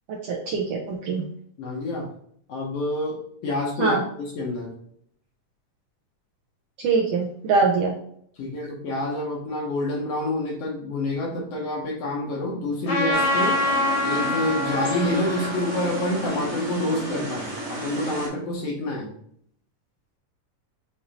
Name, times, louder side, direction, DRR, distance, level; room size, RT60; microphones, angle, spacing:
voice 1, 0.1-1.2 3.8-4.0 6.8-7.9, right 4 dB, 75° right, -1 dB, 1.5 m, -23 dB
voice 2, 1.6-2.1 2.5-3.2 3.4-4.7 8.4-13.6 14.0-19.1, left 2 dB, 65° left, -2 dB, 1.8 m, -28 dB
Trumpet, 12.9-17.5, left 1 dB, 45° left, 1.6 m, -27 dB
sound 1, 13.1-18.3, right 1 dB, 25° right, 0.8 m, -32 dB
6.7 x 2.7 x 2.9 m, 0.65 s
omnidirectional pair, 3.3 m